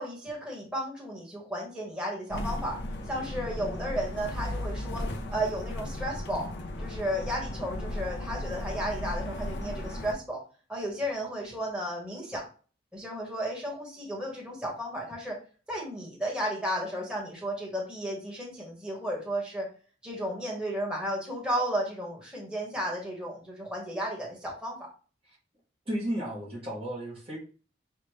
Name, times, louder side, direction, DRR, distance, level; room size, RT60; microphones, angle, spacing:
voice 1, 0.0-2.8 3.1-6.5 6.8-10.4 10.7-12.4 12.9-15.4 15.7-19.7 20.0-24.8, equal, 5° right, -3 dB, 1.4 m, -33 dB
sound 1, 2.3-10.1, left 1 dB, 60° left, 0.7 m, -35 dB
voice 2, 25.9-27.4, right 1 dB, 30° right, -4 dB, 1.2 m, -33 dB
6.5 x 2.5 x 3.2 m, 0.38 s
head